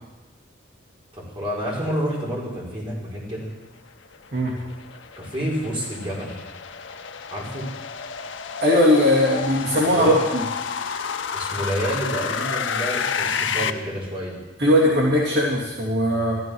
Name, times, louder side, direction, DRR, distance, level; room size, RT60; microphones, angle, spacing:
voice 1, 1.1-3.5 5.2-6.4 7.3-7.6 9.9-10.2 11.3-14.4, equal, 30° right, -5 dB, 4.5 m, -29 dB
sound 1, 4.1-13.7, left 6 dB, 75° left, 0.8 m, -30 dB
voice 2, 8.6-10.1 14.6-16.4, left 1 dB, 60° right, -4 dB, 2.8 m, -19 dB
13.5 x 13.0 x 6.4 m, 1.1 s
head